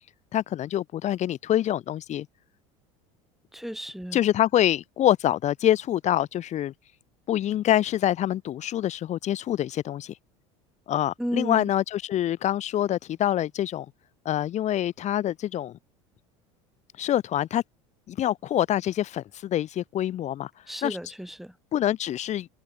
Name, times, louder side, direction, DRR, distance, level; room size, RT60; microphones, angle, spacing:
voice 1, 0.3-2.3 4.1-6.7 7.3-10.1 10.9-13.9 14.2-15.8 17.0-17.6 18.1-20.5 20.8-21.0 21.7-22.5, left 12 dB, 45° left, 3.5 m, -25 dB
voice 2, 3.5-4.2 11.2-11.7 20.7-21.5, equal, ahead, 4.0 m, -33 dB
supercardioid pair, 95°, 16 cm